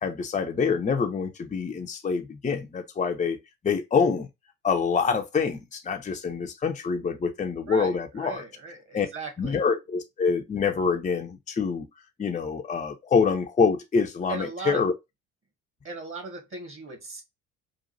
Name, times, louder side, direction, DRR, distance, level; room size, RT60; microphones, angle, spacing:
voice 1, 0.0-3.4 3.6-4.3 4.6-8.4 8.9-9.1 9.4-11.9 12.2-14.9, left 5 dB, 20° left, 0.7 m, -26 dB
voice 2, 7.7-9.6 14.3-14.9 15.8-17.2, right 4 dB, 30° right, 1.7 m, -37 dB
5.2 x 2.5 x 2.6 m
figure-of-eight pair, 55°, 40 cm